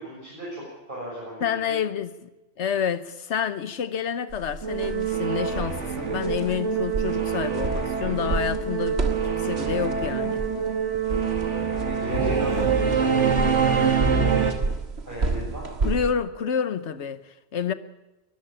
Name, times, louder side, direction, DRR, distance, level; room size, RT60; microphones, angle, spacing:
voice 1, 0.0-1.8 11.8-14.4 15.0-15.7, equal, 45° right, 7.4 m, -36 dB
voice 2, 1.4-2.3 2.6-10.4 15.8-17.7, left 7 dB, 75° left, 1.3 m, -29 dB
sound 1, 4.3-16.1, right 3 dB, 65° right, 1.9 m, -32 dB
Singing / Musical instrument, 4.6-14.5, right 6 dB, 80° right, 2.4 m, -25 dB
23.0 x 14.0 x 8.8 m
omnidirectional pair, 1.2 m